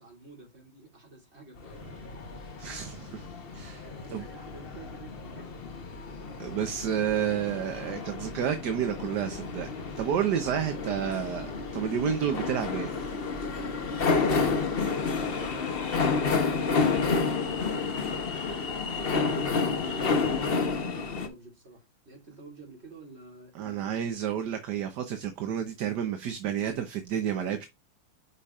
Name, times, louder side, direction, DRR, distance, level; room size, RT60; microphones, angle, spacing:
voice 1, 0.0-1.8 3.8-5.6 18.9-23.9, right 2 dB, 30° right, 3.7 m, -50 dB
sound 1, 1.6-21.3, left 4 dB, 40° left, 0.8 m, -30 dB
voice 2, 2.6-3.3 3.5-4.3 6.4-12.9 23.5-27.7, right 9 dB, 60° right, 1.4 m, -30 dB
8.5 x 5.1 x 2.4 m
omnidirectional pair, 2.2 m